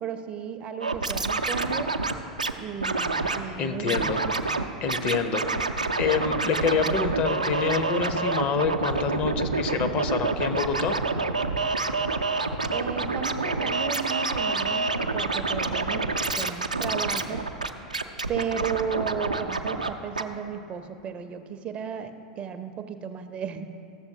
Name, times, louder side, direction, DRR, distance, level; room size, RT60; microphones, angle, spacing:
voice 1, 0.0-1.9 2.6-4.3 12.7-16.1 16.4-17.5 18.3-23.7, right 7 dB, 30° right, 9 dB, 0.5 m, -34 dB
Scratching (performance technique), 0.8-2.5 2.8-3.4 3.9-4.6 4.9-19.9 20.2-20.3, right 3 dB, 90° right, 0.4 m, -27 dB
voice 2, 3.6-4.2 4.8-5.7 6.0-11.0, left 5 dB, 40° left, 8 dB, 0.6 m, -27 dB
14.0 x 6.9 x 2.7 m, 2.8 s
figure-of-eight pair, 90°, 4 cm